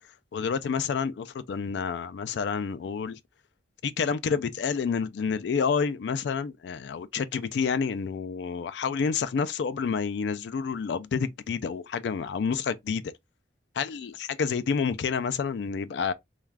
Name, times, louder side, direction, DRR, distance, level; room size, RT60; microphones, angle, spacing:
voice 1, 0.3-3.2 3.8-13.0 13.8-16.1, left 6 dB, 70° left, 0.3 m, -29 dB
2.3 x 2.3 x 3.2 m
head